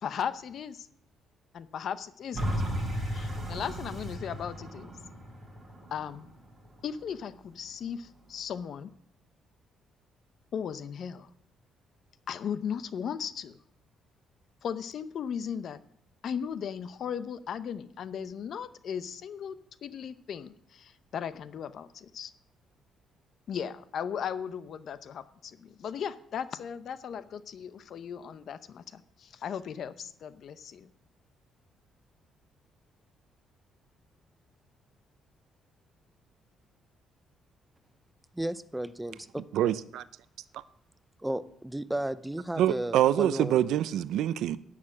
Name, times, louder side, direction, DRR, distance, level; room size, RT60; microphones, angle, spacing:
voice 1, 0.0-0.9 1.5-2.5 3.1-4.9 5.9-6.3 6.8-8.9 10.5-11.3 12.3-13.6 14.6-15.8 16.2-19.6 19.8-22.3 23.5-30.9, left 8 dB, 50° left, 0.8 m, -37 dB
sound 1, 2.3-7.4 7.9-8.0, equal, 20° right, 5.9 m, -35 dB
voice 2, 38.3-39.4 41.2-43.5, right 1 dB, 5° right, 0.5 m, -34 dB
voice 3, 39.5-40.0 42.6-44.6, right 11 dB, 75° right, 0.5 m, -25 dB
11.0 x 8.7 x 7.3 m
cardioid pair, 155°, 0 cm